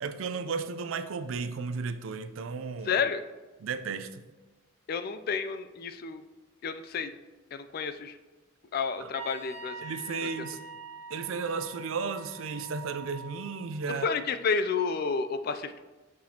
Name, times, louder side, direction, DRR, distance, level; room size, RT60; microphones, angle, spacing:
voice 1, 0.0-3.0 3.6-4.2 9.0-9.1 9.8-10.6 11.1-14.1, right 5 dB, 70° right, 0.4 m, -34 dB
voice 2, 2.8-3.2 4.9-6.2 6.6-7.2 7.5-8.2 8.7-9.8 10.2-10.3 13.9-15.8, left 5 dB, 45° left, 0.3 m, -30 dB
Wind instrument woodwind instrument, 9.1-13.5, right 2 dB, 35° right, 1.5 m, -44 dB
6.3 x 6.1 x 2.8 m
head